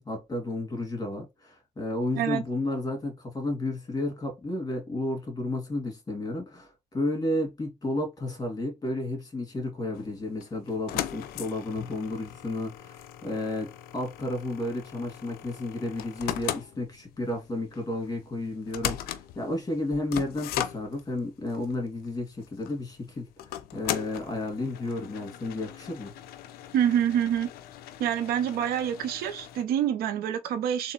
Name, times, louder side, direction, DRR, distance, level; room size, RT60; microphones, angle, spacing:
voice 1, 0.0-26.1, left 2 dB, 25° left, 2.3 m, -32 dB
sound 1, 9.9-29.6, left 12 dB, 85° left, 0.5 m, -39 dB
voice 2, 26.7-27.5 28.0-30.9, right 10 dB, 85° right, 0.6 m, -26 dB
3.7 x 3.0 x 3.1 m
supercardioid pair, 60°, 15 cm